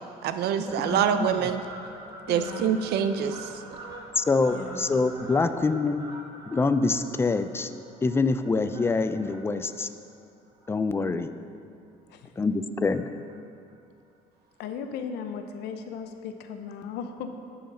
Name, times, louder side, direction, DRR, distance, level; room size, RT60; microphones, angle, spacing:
voice 1, 0.0-1.6 2.3-3.5, right 8 dB, 75° right, 10 dB, 0.5 m, -26 dB
voice 2, 0.6-1.3 4.2-6.1 6.5-7.7 8.0-9.9 10.7-11.3 12.4-13.1, left 3 dB, 15° left, 11 dB, 0.3 m, -25 dB
Fowl, 0.6-11.4 11.9-12.1 12.8-13.4 13.7-13.8 14.0-14.1 14.4-14.5 14.8-15.0 16.0-16.1 16.6-16.7, right 1 dB, 25° right, 1.3 m, -45 dB
voice 3, 2.3-2.8 4.5-4.8 12.1-12.3 14.6-17.3, left 6 dB, 80° left, 7 dB, 0.7 m, -37 dB
10.5 x 5.8 x 4.2 m, 2.5 s
cardioid pair, 110°, 17 cm